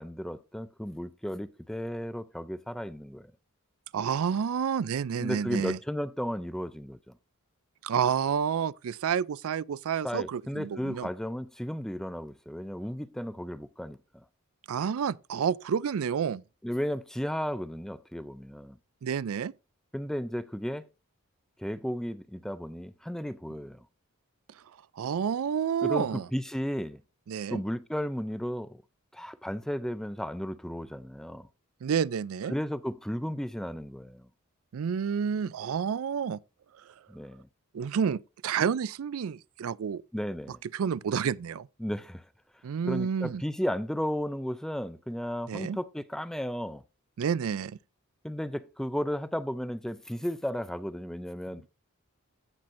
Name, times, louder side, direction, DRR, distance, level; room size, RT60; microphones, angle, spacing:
voice 1, 0.0-3.3 5.2-7.1 10.0-14.2 16.6-18.8 19.9-20.9 21.6-23.9 25.8-27.0 27.5-28.8 29.1-31.5 32.5-34.3 37.1-37.5 40.1-40.6 41.8-42.3 42.5-46.8 48.2-51.7, equal, ahead, 0.3 m, -34 dB
voice 2, 3.9-5.8 7.8-11.1 14.7-16.4 19.0-19.5 25.0-26.3 27.3-27.6 31.8-32.5 34.7-36.4 37.7-40.0 40.5-41.7 42.6-43.4 45.5-45.8 47.2-47.8, right 7 dB, 70° right, 0.4 m, -29 dB
16.0 x 6.0 x 2.6 m
head